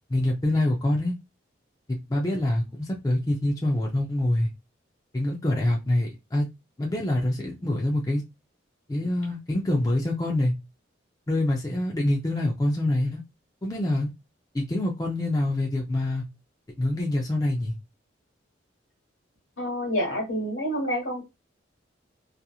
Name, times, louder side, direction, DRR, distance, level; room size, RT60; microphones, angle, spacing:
voice 1, 0.1-1.1 1.9-4.5 5.1-6.5 6.8-8.2 8.9-10.5 11.3-13.2 13.6-14.1 14.5-16.2 16.8-17.7, left 1 dB, 20° left, -1 dB, 0.4 m, -25 dB
voice 2, 19.6-21.2, equal, 85° left, -3 dB, 1.2 m, -28 dB
2.8 x 2.4 x 2.3 m, 0.23 s
head